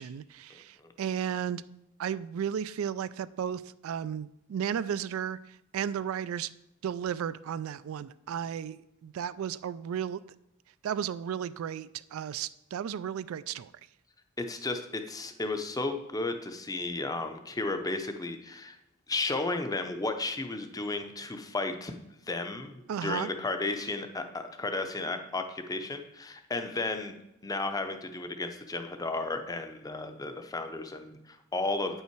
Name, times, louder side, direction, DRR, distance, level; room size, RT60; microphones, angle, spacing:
voice 1, 0.0-1.6 2.0-6.5 6.8-10.2 10.8-13.7 22.9-23.3, right 8 dB, 70° right, 0.3 m, -34 dB
voice 2, 14.4-18.8 19.1-21.9 22.3-27.1 27.4-32.0, left 2 dB, 15° left, 0.6 m, -33 dB
8.9 x 5.6 x 4.6 m
head